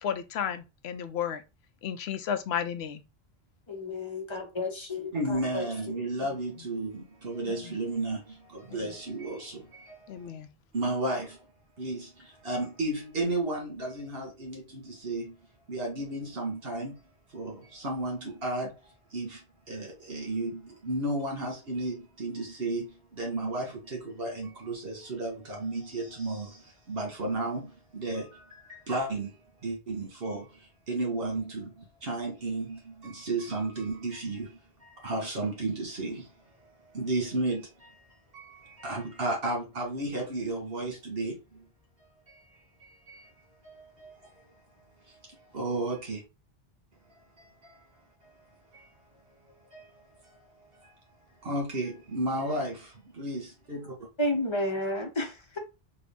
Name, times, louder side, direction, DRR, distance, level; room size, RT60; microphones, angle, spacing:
voice 1, 0.0-1.4 1.8-3.0 8.7-8.8 10.1-10.5, left 8 dB, 80° left, 0.8 m, -32 dB
voice 2, 3.7-5.6 54.2-55.6, left 1 dB, 30° left, 0.8 m, -31 dB
voice 3, 5.1-10.3 10.7-11.4 11.8-15.4 15.7-17.0 17.3-41.7 42.3-42.4 42.8-43.3 43.6-44.6 45.0-46.2 47.1-48.3 48.7-51.0 51.4-54.0, right 2 dB, 65° right, 1.5 m, -34 dB
3.7 x 2.3 x 3.4 m
omnidirectional pair, 1.1 m